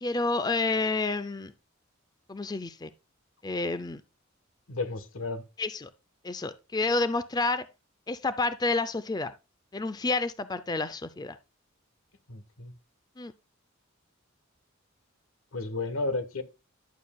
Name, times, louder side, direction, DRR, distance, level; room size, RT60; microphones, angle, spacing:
voice 1, 0.0-1.5 2.3-2.9 3.4-4.0 5.6-5.9 6.2-7.7 8.1-9.3 9.7-11.4 13.2-13.3, left 3 dB, 20° left, 0.4 m, -29 dB
voice 2, 4.7-5.4 12.3-12.7 15.5-16.4, left 3 dB, 80° left, 1.2 m, -32 dB
11.0 x 7.3 x 2.3 m
head